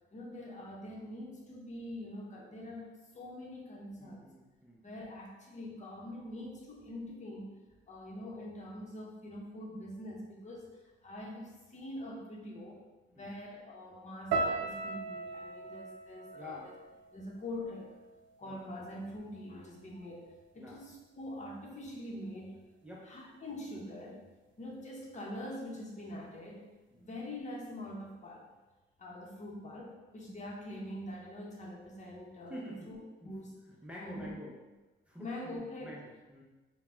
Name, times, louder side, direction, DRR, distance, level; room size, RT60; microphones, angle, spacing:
voice 1, 0.1-4.4 4.8-7.6 7.9-10.7 11.0-12.8 13.1-16.8 17.1-17.9 18.4-20.2 20.5-22.6 23.1-24.2 24.6-26.7 27.0-28.5 29.0-33.6 34.0-34.3 35.2-35.9, left 1 dB, 35° left, -2 dB, 0.9 m, -44 dB
voice 2, 4.0-4.8 13.1-13.3 16.3-16.7 18.4-18.6 20.6-20.8 22.8-23.1 26.9-27.1 32.5-32.9 33.2-33.3 33.7-34.6 35.1-36.4, left 1 dB, 5° right, -5 dB, 0.7 m, -48 dB
sound 1, 14.3-18.5 18.8-19.6 20.1-20.4, right 3 dB, 75° right, 0.5 m, -39 dB
3.8 x 2.3 x 4.4 m, 1.1 s
cardioid pair, 90°, 20 cm